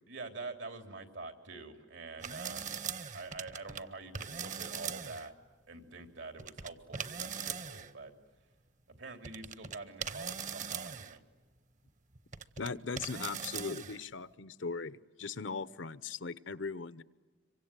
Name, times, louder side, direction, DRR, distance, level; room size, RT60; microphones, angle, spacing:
voice 1, 0.1-2.6 3.1-5.3 5.7-8.1 8.9-11.2, right 3 dB, 85° right, 6 dB, 3.4 m, -46 dB
sound 1, 2.2-3.8 4.1-5.3 6.4-7.9 8.9-9.0 9.2-11.2 11.9-12.7 13.0-14.0, right 7 dB, 40° right, 0.9 m, -40 dB
voice 2, 12.6-17.0, left 4 dB, 80° left, 16 dB, 0.9 m, -39 dB
26.0 x 24.0 x 9.0 m, 1.3 s
head